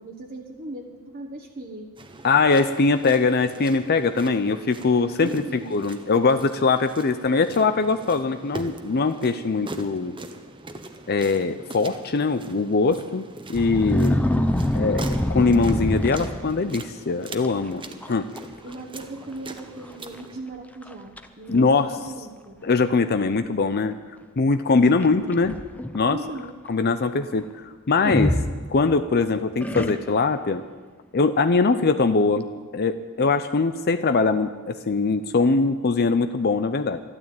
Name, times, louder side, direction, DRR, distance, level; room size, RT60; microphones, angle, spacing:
voice 1, 0.0-1.9 5.2-5.7 14.1-14.5 18.6-22.6 24.7-25.2 26.1-26.5, right 1 dB, 40° right, 0 dB, 1.3 m, -38 dB
sound 1, 2.0-20.4, right 2 dB, 25° right, 1.1 m, -42 dB
voice 2, 2.2-5.4 5.7-10.2 11.1-13.2 13.5-14.2 14.8-17.8 18.1-18.3 21.5-22.0 22.6-24.0 24.4-25.6 25.9-26.2 26.7-28.4 28.7-30.6 31.1-32.4 32.7-37.0, left 4 dB, 50° left, 10 dB, 0.6 m, -22 dB
sound 2, 13.5-16.8 17.4-17.7 18.0-18.4 18.7-18.8 19.6-19.7 20.2-20.3 20.8-21.3 22.1-22.2 25.0-26.0 28.0-29.1 29.6-30.3, left 1 dB, 5° left, 0.7 m, -25 dB
12.5 x 12.5 x 8.9 m, 1.4 s
head